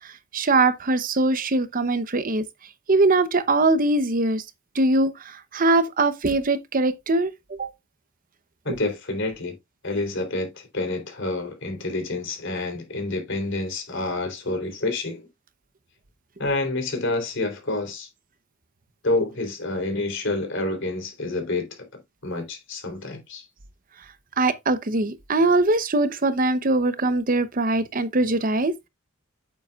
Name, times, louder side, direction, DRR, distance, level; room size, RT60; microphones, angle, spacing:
voice 1, 0.3-2.4 2.9-4.4 4.7-7.7 24.4-28.9, right 2 dB, 40° right, 0.8 m, -22 dB
voice 2, 8.7-9.5 9.8-15.2 16.4-18.1 19.0-21.9 22.2-23.5, left 2 dB, 60° left, 3.5 m, -28 dB
8.8 x 7.7 x 2.4 m
head